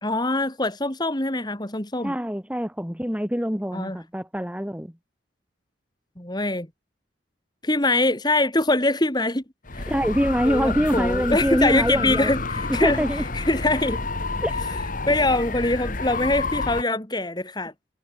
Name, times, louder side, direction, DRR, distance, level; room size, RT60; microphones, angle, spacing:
voice 1, 0.0-2.1 3.7-4.0 6.2-6.7 7.6-9.4 9.7-9.9 10.4-13.0 13.3-14.0 14.7-14.8 15.1-17.7, left 2 dB, 20° left, 2.3 m, -23 dB
voice 2, 2.0-4.9 9.9-12.3 12.7-13.3 14.4-14.5, equal, 5° right, 3.2 m, -24 dB
sound 1, 9.7-16.8, left 3 dB, 45° left, 1.8 m, -29 dB
head